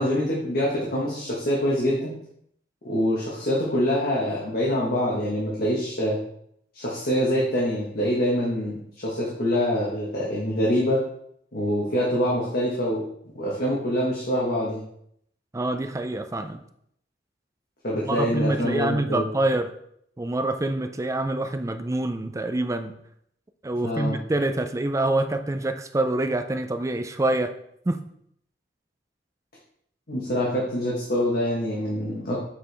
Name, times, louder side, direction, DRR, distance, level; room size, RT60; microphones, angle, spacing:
voice 1, 0.0-2.1 2.8-6.2 6.7-11.0 11.5-13.0 13.3-14.8 17.8-19.2 23.8-24.2 30.1-32.4, equal, 55° left, -5 dB, 1.4 m, -25 dB
voice 2, 15.5-16.6 18.0-19.7 20.2-23.0 23.6-27.5 27.9-28.0, right 2 dB, 15° right, 7 dB, 0.4 m, -26 dB
7.4 x 4.7 x 3.4 m, 0.70 s
head